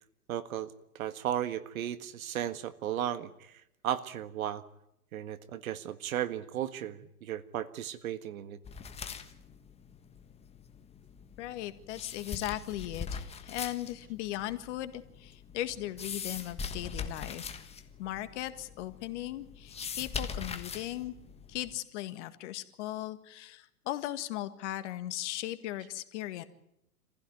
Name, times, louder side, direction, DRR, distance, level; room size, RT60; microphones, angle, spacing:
voice 1, 0.3-3.5 3.8-4.6 5.1-8.6, right 11 dB, 65° right, 13 dB, 1.8 m, -35 dB
sound 1, 8.6-21.8, left 6 dB, 15° left, 1.4 m, -42 dB
voice 2, 11.4-17.5 18.0-21.1 21.5-26.4, left 14 dB, 50° left, 11 dB, 1.8 m, -38 dB
26.0 x 15.5 x 9.6 m, 0.82 s
hypercardioid pair, 125°, 46 cm